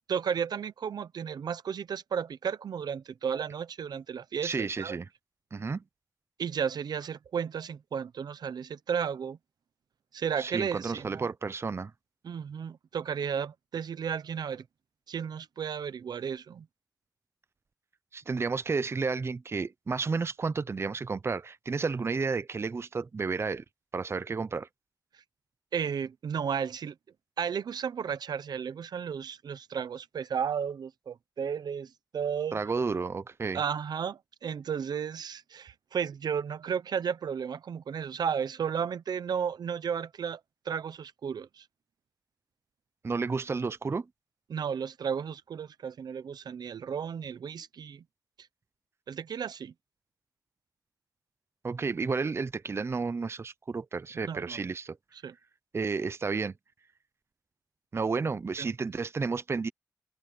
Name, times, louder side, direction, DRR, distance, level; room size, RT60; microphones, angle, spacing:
voice 1, 0.1-5.0 6.4-9.4 10.1-11.3 12.2-14.6 15.1-16.7 25.7-26.9 27.4-32.6 33.5-40.4 40.6-41.6 44.5-48.0 49.1-49.7 54.2-54.6 55.2-55.3 58.6-58.7, right 7 dB, 85° right, 0.8 m, -33 dB
voice 2, 4.4-5.1 5.5-5.8 10.4-11.9 18.1-23.6 23.9-24.7 32.5-33.6 43.0-44.1 51.6-55.0 55.7-56.5 57.9-59.7, right 4 dB, 40° right, 0.6 m, -31 dB
open air
wide cardioid pair, 95°, 7 cm